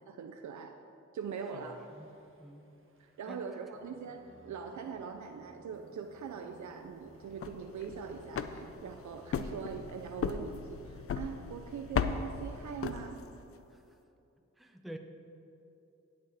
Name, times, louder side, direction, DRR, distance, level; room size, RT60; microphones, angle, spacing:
voice 1, 0.1-0.8 1.1-1.8 3.0-13.2, right 6 dB, 80° right, 4 dB, 0.5 m, -42 dB
Singing, 1.3-12.6, right 2 dB, 45° right, 1.2 m, -60 dB
voice 2, 1.5-2.1 2.4-2.7 3.3-3.5 13.7-14.0 14.6-15.0, equal, ahead, 4 dB, 0.7 m, -48 dB
sound 1, 7.2-13.5, left 6 dB, 50° left, 0.5 m, -37 dB
9.3 x 8.7 x 4.1 m, 2.8 s
cardioid pair, 60°, 29 cm